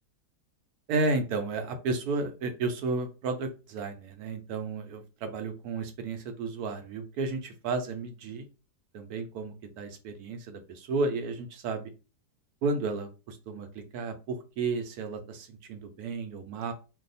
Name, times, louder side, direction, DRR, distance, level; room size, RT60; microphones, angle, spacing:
voice 1, 0.9-8.5 8.9-11.8 12.6-16.7, right 3 dB, 75° right, 7 dB, 1.0 m, -32 dB
2.6 x 2.2 x 4.0 m, 0.32 s
omnidirectional pair, 1.7 m